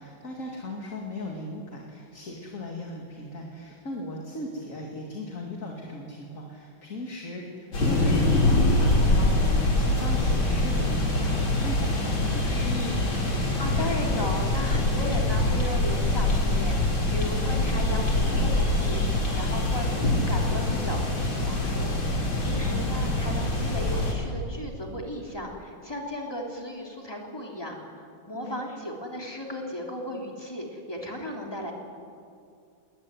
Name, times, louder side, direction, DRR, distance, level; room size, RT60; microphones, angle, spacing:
voice 1, 0.0-13.2 22.4-22.8 28.4-28.6, left 1 dB, 40° left, 0 dB, 2.7 m, -37 dB
sound 1, 7.7-24.1, left 2 dB, 85° left, 4.8 m, -24 dB
voice 2, 13.6-21.9 22.2-31.7, left 1 dB, 10° left, 0 dB, 3.4 m, -35 dB
20.5 x 20.0 x 9.8 m, 2.4 s
omnidirectional pair, 2.1 m